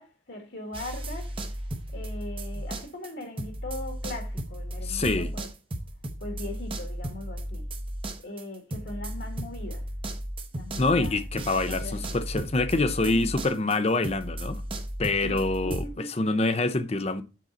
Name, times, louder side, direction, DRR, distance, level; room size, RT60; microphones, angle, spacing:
voice 1, 0.0-1.4 1.9-5.5 6.2-7.7 8.2-9.9 10.5-11.2 11.5-12.1 13.0-13.8 15.2-16.1, left 1 dB, 60° left, 1.9 m, -40 dB
sound 1, 0.7-3.1 3.4-15.9, right 1 dB, 25° right, 0.9 m, -35 dB
voice 2, 4.8-5.3 10.8-14.6 15.0-15.8 16.2-17.2, left 2 dB, 30° left, 0.7 m, -26 dB
7.6 x 5.6 x 3.9 m
head